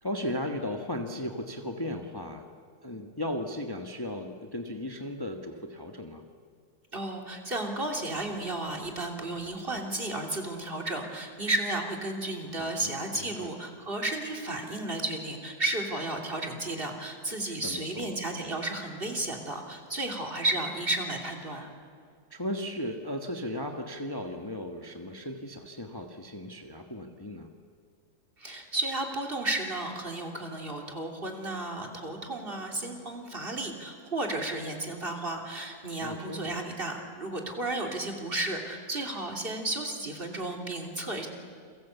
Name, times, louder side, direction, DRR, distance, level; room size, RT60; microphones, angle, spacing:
voice 1, 0.0-2.5 2.8-6.3 12.6-13.5 17.5-18.2 22.3-27.5 36.0-36.6, left 1 dB, 15° left, 3 dB, 1.3 m, -36 dB
voice 2, 6.9-21.7 28.4-41.3, right 2 dB, 35° right, 2 dB, 3.3 m, -33 dB
29.0 x 23.0 x 8.3 m, 2.1 s
omnidirectional pair, 1.7 m